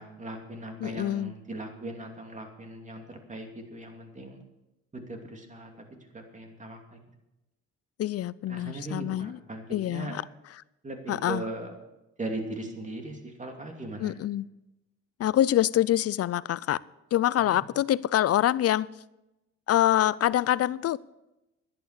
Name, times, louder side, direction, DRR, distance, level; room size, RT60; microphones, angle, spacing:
voice 1, 0.0-4.5 4.9-5.7 6.1-7.0 8.5-10.1 10.8-11.7 12.2-14.1 17.5-17.6, right 2 dB, 25° right, 2.7 m, -39 dB
voice 2, 0.8-1.3 8.0-9.4 9.7-10.2 10.5-10.6 11.1-11.5 14.0-14.5 15.2-16.8 17.1-18.9 19.7-21.0, left 12 dB, 55° left, 0.5 m, -25 dB
11.0 x 11.0 x 6.7 m
cardioid pair, 90°, 30 cm